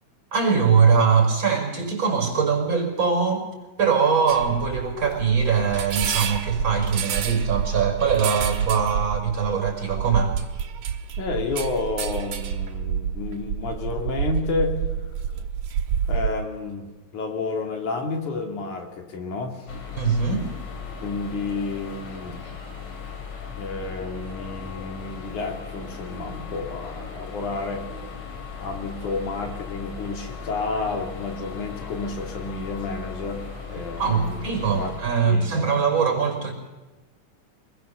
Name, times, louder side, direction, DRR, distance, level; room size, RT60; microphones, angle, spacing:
voice 1, 0.3-3.5 3.8-10.3 20.0-20.5 34.0-36.5, right 6 dB, 40° right, 1 dB, 5.7 m, -22 dB
sound 1, 4.3-16.4, right 8 dB, 70° right, 2.8 m, -28 dB
voice 2, 11.2-14.8 16.1-16.9 17.1-19.7 21.0-22.4 23.6-27.8 28.6-34.9 35.3-35.7, left 3 dB, 80° left, 3 dB, 4.3 m, -30 dB
sound 2, 19.7-35.0, left 5 dB, 65° left, 4.1 m, -37 dB
25.0 x 20.5 x 7.1 m, 1.2 s
omnidirectional pair, 3.4 m